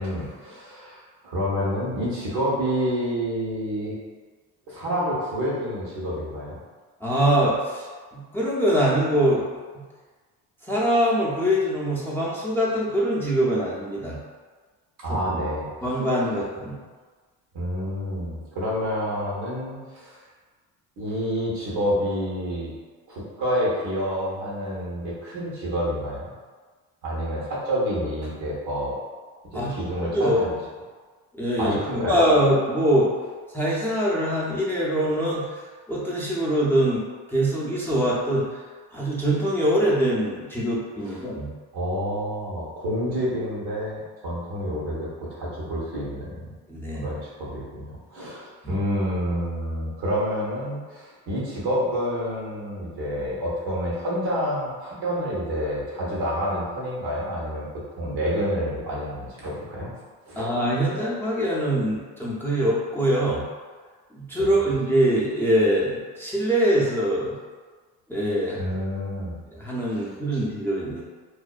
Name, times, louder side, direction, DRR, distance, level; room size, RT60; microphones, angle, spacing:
voice 1, 0.0-4.0 4.7-6.6 15.0-15.7 17.5-20.2 21.0-22.7 23.1-26.3 27.0-28.9 29.5-30.5 31.6-32.2 41.7-46.4 47.0-57.7 58.0-59.9 60.2-60.4 64.4-64.5 68.6-69.3 69.9-70.0 70.3-70.4, equal, 80° right, -6 dB, 1.0 m, -28 dB
voice 2, 7.0-7.9 8.1-9.4 10.7-14.2 15.8-16.8 29.5-29.9 30.1-30.6 31.4-31.8 32.1-33.1 33.5-35.6 35.9-37.0 37.3-38.5 38.9-41.5 44.3-44.4 46.7-47.1 48.6-48.8 60.4-63.4 64.1-67.4 68.1-68.6 69.5-71.0, right 1 dB, 5° left, -7 dB, 0.5 m, -23 dB
2.5 x 2.1 x 2.3 m, 1.4 s
cardioid pair, 85°, 39 cm